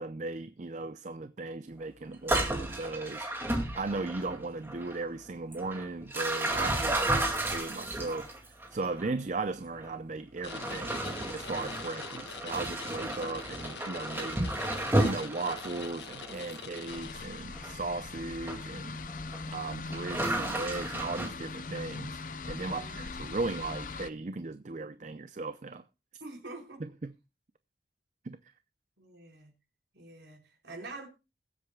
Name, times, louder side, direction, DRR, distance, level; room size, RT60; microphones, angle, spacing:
voice 1, 0.0-3.3 3.8-14.5 15.0-19.0 19.5-22.2 22.5-25.8 26.8-27.1 28.2-28.4, right 3 dB, 45° right, 0.5 m, -37 dB
sound 1, 2.1-4.4 4.7-5.0 5.5-9.1 9.7-9.9 10.4-17.0 17.5-17.7 18.5-18.6 19.1-19.4 19.9-21.3, right 1 dB, 15° right, 2.1 m, -33 dB
voice 2, 6.8-7.1 22.6-23.0 26.2-26.8 29.0-29.5 29.9-31.1, right 2 dB, 90° right, 4.4 m, -46 dB
sound 2, 10.4-17.7, left 6 dB, 80° left, 1.3 m, -44 dB
sound 3, 16.9-24.1, left 3 dB, 50° left, 0.6 m, -41 dB
21.0 x 8.1 x 2.2 m
head